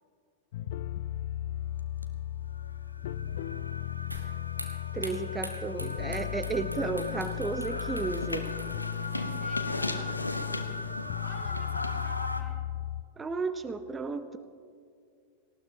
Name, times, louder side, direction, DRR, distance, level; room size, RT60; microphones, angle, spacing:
sound 1, 0.5-13.0, left 11 dB, 55° left, 0.4 m, -36 dB
sound 2, 2.0-2.1 2.5-12.4, left 2 dB, 85° left, 0.9 m, -37 dB
sound 3, 4.1-10.7, equal, 90° right, 1.4 m, -46 dB
voice 1, 4.9-8.5 13.2-14.4, right 4 dB, 15° right, 10 dB, 0.6 m, -33 dB
voice 2, 5.7-6.2 9.0-10.5 11.2-12.6, left 3 dB, 15° left, -2 dB, 3.0 m, -52 dB
18.5 x 17.5 x 2.8 m, 2.2 s
figure-of-eight pair, 90°, 0 cm